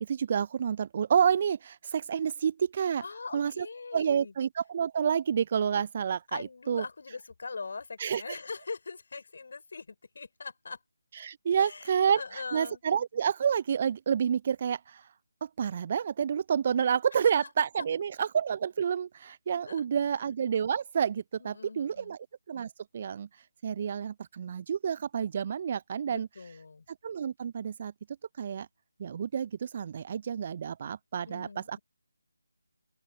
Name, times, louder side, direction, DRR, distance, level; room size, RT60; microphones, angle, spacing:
voice 1, 0.0-3.0 3.3-3.7 3.9-6.8 8.0-8.2 11.2-15.0 15.4-22.2 22.5-23.3 23.6-26.3 27.0-27.9 28.4-28.7 29.0-31.8, right 7 dB, 35° right, 0.5 m, -29 dB
voice 2, 3.0-4.3 6.3-10.8 11.6-12.8 17.2-17.3 19.6-19.8 21.4-22.2 26.1-26.8 31.3-31.8, left 4 dB, 50° left, 6.1 m, -42 dB
open air
figure-of-eight pair, 155°, 0 cm